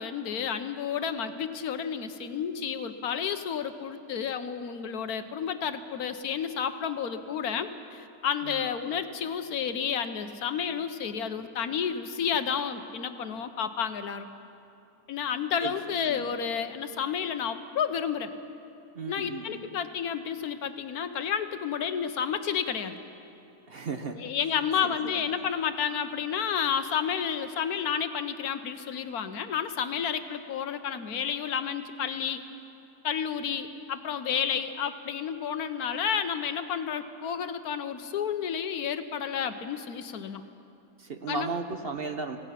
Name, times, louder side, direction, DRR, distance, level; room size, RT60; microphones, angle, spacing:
voice 1, 0.0-14.3 15.1-18.3 19.1-23.0 24.1-32.4 33.0-40.4 41.3-41.5, left 7 dB, 75° left, 9 dB, 1.4 m, -31 dB
voice 2, 15.6-16.4 18.9-19.8 23.7-24.3 24.8-25.3 41.0-42.4, right 4 dB, 45° right, 6 dB, 1.0 m, -36 dB
26.0 x 17.0 x 5.8 m, 2.7 s
omnidirectional pair, 1.6 m